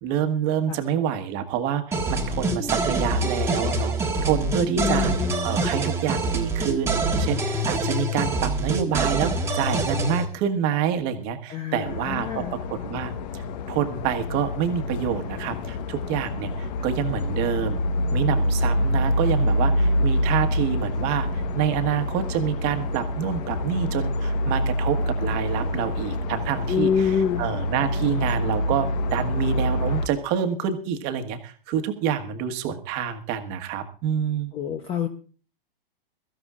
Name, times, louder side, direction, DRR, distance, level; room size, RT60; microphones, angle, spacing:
voice 1, 0.0-17.8 18.1-34.5, right 9 dB, 35° right, 6 dB, 1.5 m, -27 dB
sound 1, 1.9-10.2, right 2 dB, 10° right, 1.4 m, -25 dB
voice 2, 4.8-5.5 11.5-12.5 26.7-27.5 34.5-35.1, left 7 dB, 20° left, 6 dB, 0.8 m, -26 dB
sound 2, 11.9-30.1, left 1 dB, 45° left, 1.2 m, -26 dB
22.5 x 13.5 x 2.4 m, 0.40 s
hypercardioid pair, 145°, 29 cm